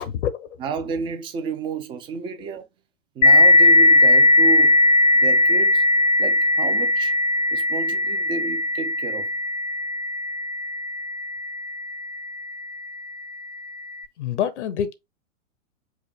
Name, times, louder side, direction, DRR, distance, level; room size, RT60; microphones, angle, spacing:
voice 1, 0.0-0.6 14.2-14.9, left 9 dB, 60° left, 0.8 m, -26 dB
voice 2, 0.6-2.6 3.2-4.8 5.2-5.8 6.2-7.1 7.5-9.3, right 5 dB, 15° right, 0.4 m, -31 dB
sound 1, 3.2-12.5, left 2 dB, 85° left, 1.0 m, -18 dB
5.0 x 2.1 x 4.7 m
figure-of-eight pair, 105°, 39 cm